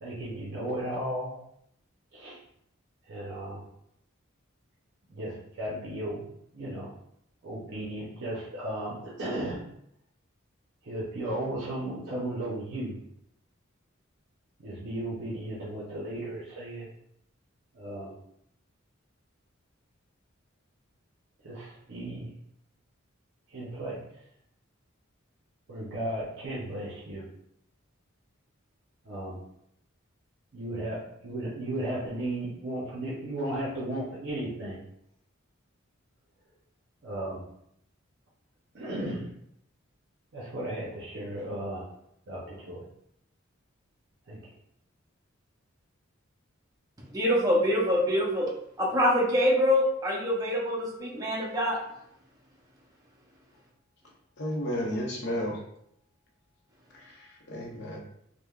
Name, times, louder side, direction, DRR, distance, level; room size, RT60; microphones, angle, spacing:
voice 1, 0.0-1.4 2.1-2.4 3.1-3.6 5.1-6.2 6.5-6.9 7.4-9.6 10.8-13.0 14.6-16.9 17.7-18.1 21.4-22.3 23.5-24.0 25.7-27.3 29.0-29.4 30.5-34.8 37.0-37.4 38.7-39.3 40.3-41.9 42.3-42.9 44.2-44.5, right 1 dB, 60° right, -7 dB, 0.6 m, -35 dB
voice 2, 47.1-48.5 48.8-51.8, equal, 20° right, -4 dB, 0.6 m, -25 dB
voice 3, 54.4-55.6 56.9-58.0, equal, 55° left, -2 dB, 0.7 m, -33 dB
3.3 x 2.1 x 2.3 m, 0.73 s
head